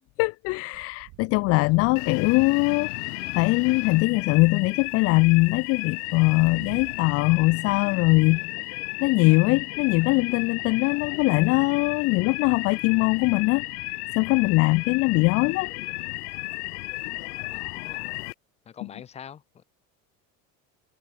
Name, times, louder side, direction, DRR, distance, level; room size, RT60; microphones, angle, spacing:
voice 1, 0.2-2.9 3.3-8.5 9.0-13.6 14.2-15.7, left 24 dB, 50° left, 0.5 m, -21 dB
sound 1, 0.7-3.0 3.3-7.1, right 27 dB, 65° right, 4.2 m, -50 dB
sound 2, 2.0-18.3, left 35 dB, 85° left, 1.3 m, -34 dB
voice 2, 17.5-18.1 18.7-19.6, left 8 dB, 20° left, 0.8 m, -45 dB
cardioid pair, 165°, 32 cm